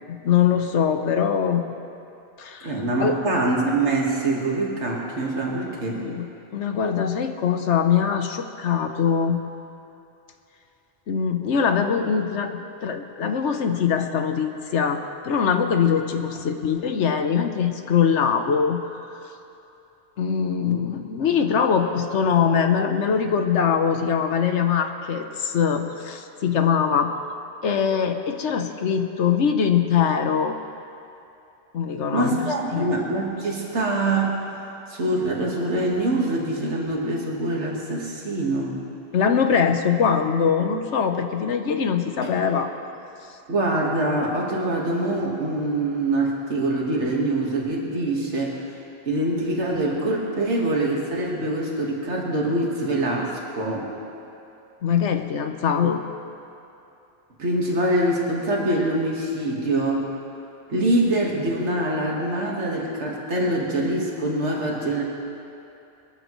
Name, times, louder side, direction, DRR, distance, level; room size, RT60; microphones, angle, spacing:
voice 1, 0.1-1.6 2.4-2.7 3.0-3.2 5.9-6.3 6.5-9.4 11.1-18.8 19.2-19.3 20.2-27.2 27.6-30.5 31.7-32.9 39.1-42.7 54.8-56.0, left 7 dB, 85° left, 6 dB, 1.1 m, -22 dB
voice 2, 2.6-6.0 32.1-34.4 34.9-38.8 42.2-42.3 43.5-48.6 49.1-53.9 57.4-60.1 60.7-65.0, right 1 dB, 80° right, -3 dB, 2.0 m, -24 dB
21.0 x 13.0 x 3.1 m, 2.8 s
omnidirectional pair, 1.2 m